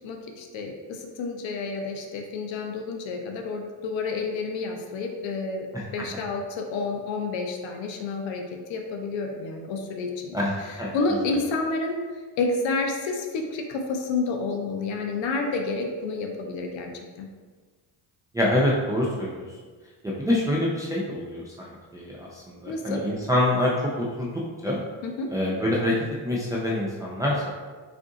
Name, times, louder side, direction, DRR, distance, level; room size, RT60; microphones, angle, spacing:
voice 1, 0.0-5.7 5.9-8.4 8.7-10.4 10.7-12.0 12.4-16.9 17.2-17.3 22.7-23.0 25.0-25.3, left 3 dB, 65° left, 3 dB, 0.7 m, -29 dB
voice 2, 10.3-10.9 18.3-19.5 20.0-24.3 24.6-24.8 25.3-25.9 26.2-27.5, left 1 dB, 5° right, -5 dB, 0.5 m, -26 dB
3.6 x 2.6 x 3.7 m, 1.4 s
supercardioid pair, 80°, 49 cm